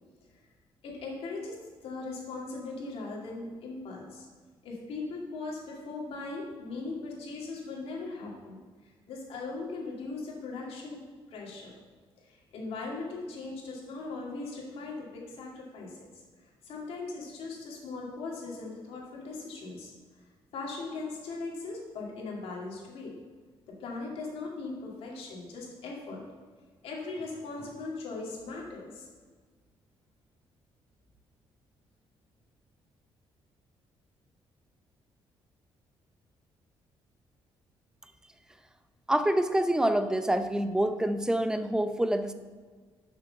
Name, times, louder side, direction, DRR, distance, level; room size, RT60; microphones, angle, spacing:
voice 1, 0.8-1.6 1.8-4.3 4.6-8.6 9.1-11.0 11.3-11.8 12.2-16.0 16.6-19.9 20.5-23.1 23.8-26.2 26.8-29.1, left 3 dB, 75° left, -2 dB, 2.2 m, -39 dB
voice 2, 39.1-42.3, right 1 dB, 5° right, 9 dB, 0.6 m, -26 dB
6.4 x 6.0 x 6.6 m, 1.5 s
cardioid pair, 95°, 10 cm